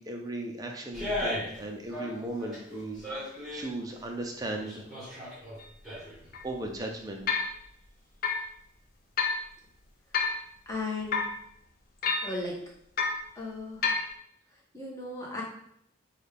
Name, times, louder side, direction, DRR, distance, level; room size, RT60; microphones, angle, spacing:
voice 1, 0.0-3.0 3.5-5.2 6.4-7.5, right 1 dB, 20° right, 2 dB, 0.5 m, -37 dB
sound 1, 0.9-1.6 1.9-3.7 4.2-6.3 6.6-6.7, left 1 dB, ahead, 1.3 m, -37 dB
sound 2, 5.6-5.7 6.3-6.4 7.3-7.5 8.2-8.5 9.2-9.4 10.1-10.4 11.1-11.4 12.0-12.4 13.0-13.2 13.8-14.1, left 5 dB, 45° left, 0.5 m, -28 dB
voice 2, 10.7-11.2 12.2-12.5 13.4-13.9 14.7-15.4, left 2 dB, 15° left, -4 dB, 1.1 m, -36 dB
6.2 x 2.4 x 3.4 m, 0.72 s
head